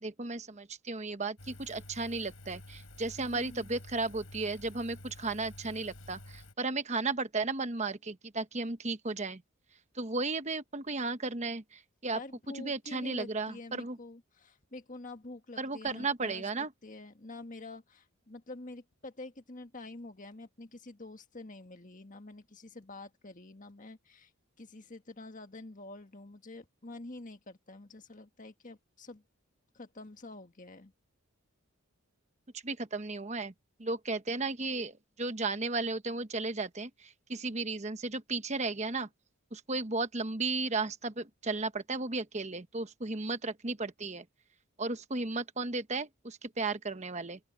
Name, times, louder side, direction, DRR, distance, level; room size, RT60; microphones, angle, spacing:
voice 1, 0.0-9.4 9.9-12.2 12.5-14.0 15.6-16.7 32.6-33.5 33.8-39.1 39.5-44.2 44.8-47.4, right 3 dB, 30° right, 1.1 m, -34 dB
Engine, 1.4-6.5, left 1 dB, 70° left, 5.8 m, -50 dB
voice 2, 3.2-3.7 12.1-24.3 24.6-29.2 29.7-30.9, left 2 dB, 35° left, 1.7 m, -47 dB
open air
head